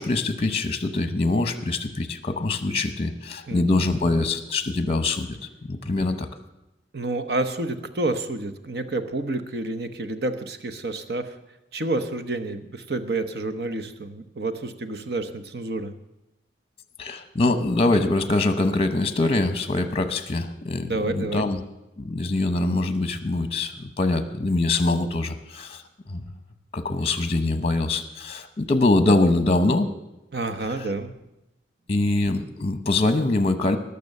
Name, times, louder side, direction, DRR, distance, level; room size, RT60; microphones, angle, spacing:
voice 1, 0.0-6.3 17.0-21.6 22.0-25.8 26.1-26.2 26.7-29.9 30.8-30.9 31.9-33.8, left 2 dB, 35° left, 10 dB, 0.9 m, -23 dB
voice 2, 3.5-3.9 6.9-11.4 11.7-15.9 20.9-21.5 30.3-31.1, right 2 dB, 60° right, 10 dB, 1.0 m, -29 dB
19.5 x 6.9 x 6.7 m, 0.95 s
head